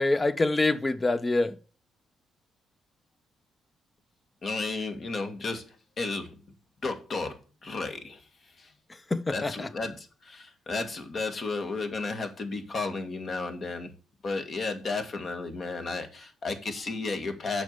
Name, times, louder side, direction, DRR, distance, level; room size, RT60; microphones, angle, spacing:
voice 1, 0.0-1.6 9.1-9.7, left 2 dB, 20° left, 0.7 m, -25 dB
voice 2, 4.4-5.6 6.0-6.4 6.8-7.4 7.6-8.2 8.6-8.7 9.3-13.9 14.2-17.6, left 3 dB, 45° left, 1.7 m, -33 dB
7.1 x 5.4 x 6.7 m
cardioid pair, 90°, 0 cm